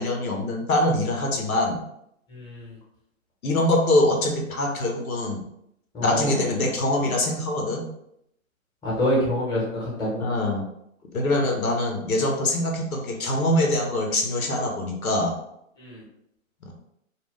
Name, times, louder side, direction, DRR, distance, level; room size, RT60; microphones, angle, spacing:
voice 1, 0.0-1.8 3.4-5.4 6.0-7.9 10.2-10.6 11.1-15.4 16.6-16.7, left 1 dB, 85° left, 1 dB, 0.8 m, -24 dB
voice 2, 2.3-2.7 5.9-6.5 8.8-10.3 15.8-16.0, equal, 10° left, -5 dB, 0.8 m, -27 dB
2.3 x 2.1 x 3.6 m, 0.75 s
figure-of-eight pair, 130°, 41 cm